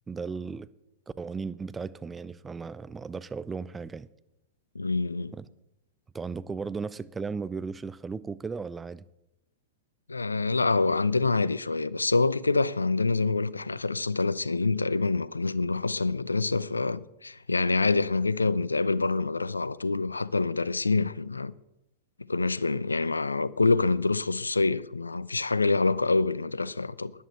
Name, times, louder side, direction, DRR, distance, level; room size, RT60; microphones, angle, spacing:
voice 1, 0.1-0.7 1.2-4.1 5.3-5.4 6.1-9.0, right 5 dB, 15° right, 0.5 m, -36 dB
voice 2, 4.7-5.3 10.1-21.5 22.3-27.1, left 3 dB, 90° left, 0.5 m, -26 dB
11.0 x 10.5 x 8.2 m
figure-of-eight pair, 100°, 0 cm